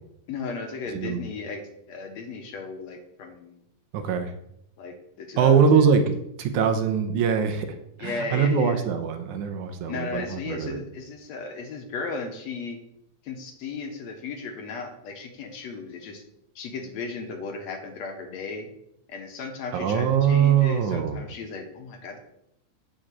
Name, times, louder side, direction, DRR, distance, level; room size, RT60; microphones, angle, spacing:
voice 1, 0.3-1.6 1.9-3.6 4.8-5.6 8.0-8.8 9.9-12.8 13.2-16.2 16.6-18.7 19.1-22.2, left 4 dB, 65° left, 5 dB, 2.2 m, -35 dB
voice 2, 3.9-4.3 5.4-10.8 19.7-21.2, right 7 dB, 75° right, 6 dB, 2.3 m, -22 dB
8.3 x 5.1 x 7.4 m, 0.78 s
omnidirectional pair, 3.6 m